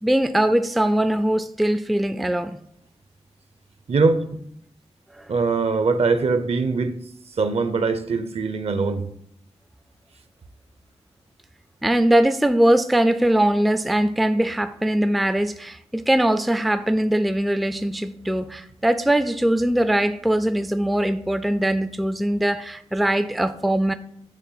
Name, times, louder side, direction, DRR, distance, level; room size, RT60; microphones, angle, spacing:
voice 1, 0.0-2.6 5.2-5.3 11.8-23.9, right 1 dB, ahead, 0.3 m, -21 dB
voice 2, 3.9-4.4 5.3-6.9 7.4-9.1, right 4 dB, 60° right, 0.6 m, -22 dB
8.4 x 3.3 x 5.6 m
wide cardioid pair, 95°, 12 cm